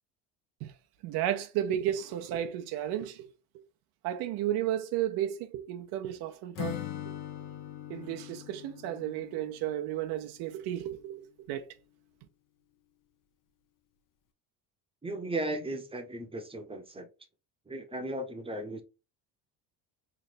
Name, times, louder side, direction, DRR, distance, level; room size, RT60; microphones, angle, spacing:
voice 1, 1.0-3.3 4.0-6.8 7.9-11.7, right 11 dB, 75° right, 0.7 m, -33 dB
Acoustic guitar / Strum, 6.5-10.5, left 12 dB, 55° left, 0.8 m, -41 dB
voice 2, 15.0-17.1 17.7-18.8, right 1 dB, 15° right, 0.8 m, -36 dB
3.2 x 2.5 x 4.1 m
cardioid pair, 105°, 39 cm